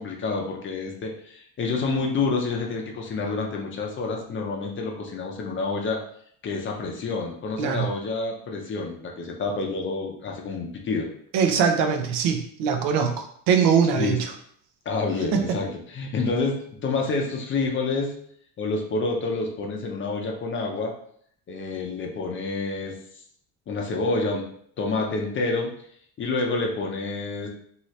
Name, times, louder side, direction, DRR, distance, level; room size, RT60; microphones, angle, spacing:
voice 1, 0.0-6.0 6.4-11.1 13.9-14.2 14.9-18.1 18.6-20.9 21.5-23.0 23.7-24.4 24.8-25.7 26.2-27.5, left 3 dB, 30° left, 0 dB, 0.5 m, -28 dB
voice 2, 11.3-14.3 15.3-15.4, right 6 dB, 85° right, 5 dB, 0.7 m, -22 dB
2.8 x 2.7 x 3.1 m, 0.64 s
cardioid pair, 145°, 40 cm